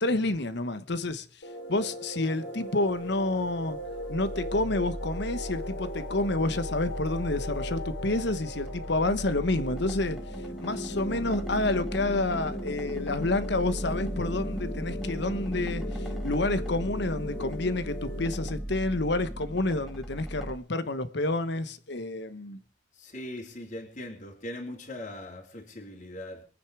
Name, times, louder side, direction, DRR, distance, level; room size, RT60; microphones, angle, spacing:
voice 1, 0.0-1.2 1.7-3.8 4.1-10.2 10.6-15.8 16.2-22.6, left 2 dB, 65° left, 1.2 m, -29 dB
sound 1, 1.4-18.5, left 1 dB, 80° left, 3.0 m, -40 dB
sound 2, 3.1-20.5, equal, ahead, 2.0 m, -37 dB
voice 2, 22.9-26.4, left 1 dB, 40° left, 3.3 m, -40 dB
24.0 x 9.3 x 4.9 m
head